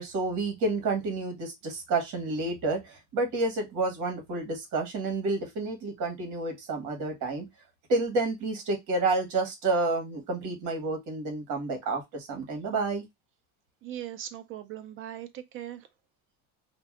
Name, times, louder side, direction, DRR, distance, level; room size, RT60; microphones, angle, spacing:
voice 1, 0.0-7.5 7.9-13.0, right 3 dB, 55° right, 1.3 m, -29 dB
voice 2, 13.8-15.9, right 11 dB, 35° right, 0.4 m, -39 dB
2.6 x 2.2 x 3.4 m
cardioid pair, 150°, 37 cm